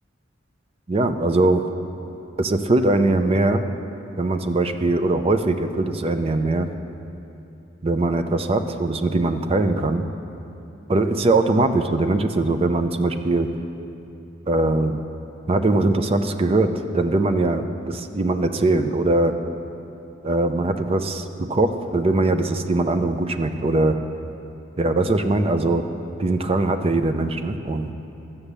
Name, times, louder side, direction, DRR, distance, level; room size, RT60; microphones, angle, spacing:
voice 1, 0.9-1.6 2.4-3.7 4.2-6.7 7.8-10.1 10.9-13.5 14.5-15.0 15.5-19.4 20.2-24.0 24.8-25.9 26.2-27.9, right 2 dB, 30° right, 8 dB, 0.5 m, -21 dB
13.0 x 7.2 x 6.7 m, 2.9 s
head